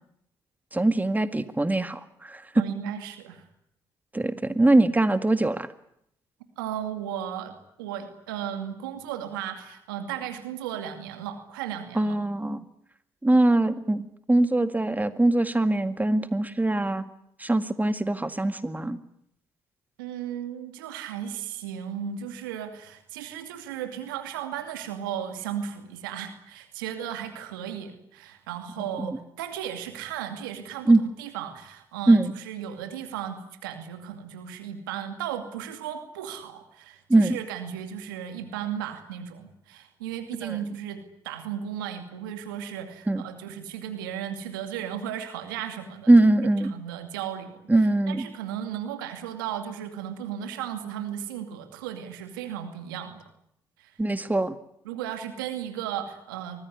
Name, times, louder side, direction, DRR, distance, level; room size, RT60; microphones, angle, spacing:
voice 1, 0.7-2.6 4.1-5.7 12.0-12.6 13.2-17.0 17.4-19.0 29.0-29.2 30.9-31.0 32.1-32.3 37.1-37.4 40.4-40.6 43.1-43.2 46.1-46.7 47.7-48.3 54.0-54.6, right 2 dB, 15° right, 10 dB, 1.9 m, -22 dB
voice 2, 2.6-3.5 6.6-12.2 20.0-46.1 46.7-47.6 48.1-53.2 53.8-53.9 54.8-56.7, right 9 dB, 85° right, 7 dB, 2.4 m, -35 dB
24.0 x 19.5 x 9.6 m, 0.75 s
hypercardioid pair, 45°, 11 cm